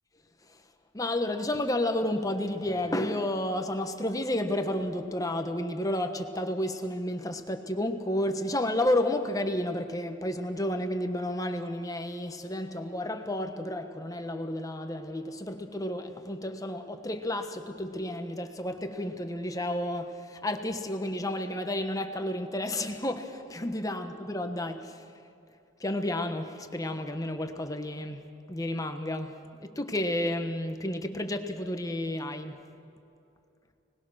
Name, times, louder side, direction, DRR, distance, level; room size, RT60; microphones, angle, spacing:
voice 1, 0.9-25.0 25.8-32.6, left 1 dB, 15° left, 1.3 m, -31 dB
30.0 x 20.0 x 6.4 m
head